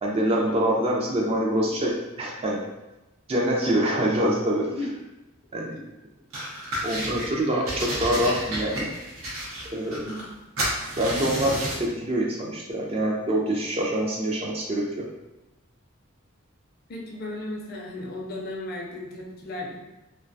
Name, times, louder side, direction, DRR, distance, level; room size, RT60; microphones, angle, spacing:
voice 1, 0.0-2.6 3.3-4.7 5.5-5.7 6.8-8.9 9.7-10.0 11.0-15.1, right 1 dB, 30° right, -1 dB, 0.3 m, -25 dB
sound 1, 6.3-7.3 7.7-10.3 10.6-11.9, right 1 dB, 80° right, 0.6 m, -31 dB
voice 2, 10.0-10.4 16.9-19.7, left 2 dB, 45° left, -1 dB, 0.4 m, -35 dB
2.3 x 2.2 x 2.5 m, 0.99 s
head